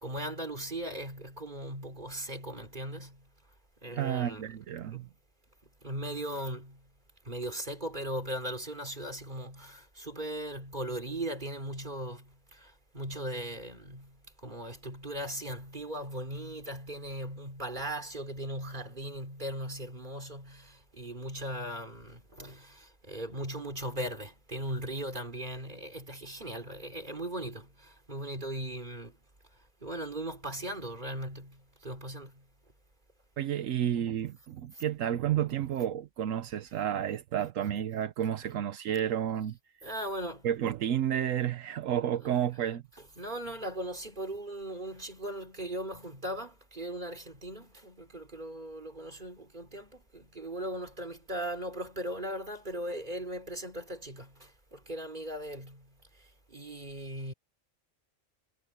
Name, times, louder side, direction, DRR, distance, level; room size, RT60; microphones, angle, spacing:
voice 1, 0.0-3.2 3.8-4.6 4.9-5.0 5.8-6.8 7.3-12.3 12.6-14.1 14.4-29.1 29.8-31.6 31.8-32.3 39.8-40.5 42.3-42.4 43.2-55.8 56.5-57.3, right 1 dB, 35° right, 3.9 m, -38 dB
voice 2, 3.9-5.1 33.4-39.6 40.4-42.8, right 10 dB, 80° right, 1.1 m, -31 dB
omnidirectional pair, 1.3 m